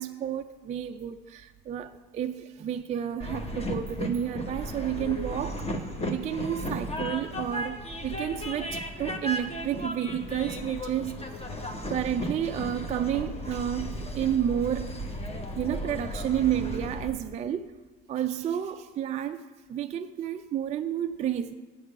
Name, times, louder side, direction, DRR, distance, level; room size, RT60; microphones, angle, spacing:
voice 1, 0.0-5.7 6.1-11.3 11.9-15.0 15.6-17.8 18.1-19.4 19.7-21.5, right 10 dB, 20° right, 0.4 m, -31 dB
Train, 3.2-17.1, equal, 20° left, 1.1 m, -35 dB
8.4 x 6.4 x 6.0 m
hypercardioid pair, 75°, 33 cm